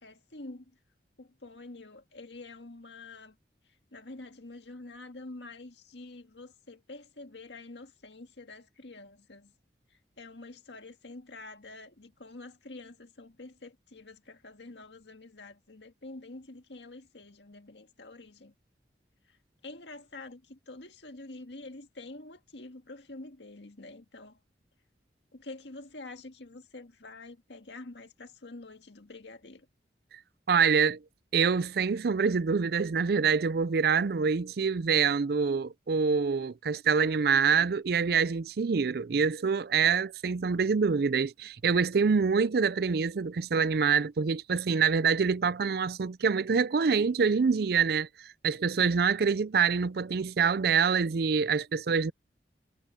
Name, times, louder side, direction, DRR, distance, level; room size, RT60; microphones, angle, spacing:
voice 1, 0.0-0.7 1.2-3.4 3.9-9.5 10.2-18.5 19.3-19.4 19.6-24.4 25.3-29.7, left 2 dB, 80° left, 1.9 m, -47 dB
voice 2, 30.5-31.0 31.3-48.1 48.4-52.1, right 5 dB, 60° right, 0.5 m, -26 dB
head